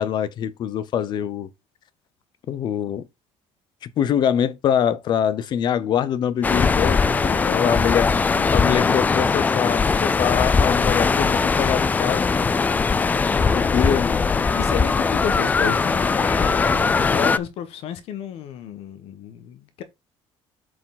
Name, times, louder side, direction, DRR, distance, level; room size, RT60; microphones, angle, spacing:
voice 1, 0.0-1.5 2.5-3.0 4.0-8.1 8.5-12.5 13.4-14.4, left 9 dB, 40° left, 0.8 m, -24 dB
sound 1, 6.4-17.4, left 4 dB, 15° left, 0.3 m, -20 dB
voice 2, 7.2-9.1 13.4-13.5 14.4-19.8, left 8 dB, 60° left, 1.4 m, -32 dB
7.9 x 5.1 x 3.9 m
cardioid pair, 180°, 11 cm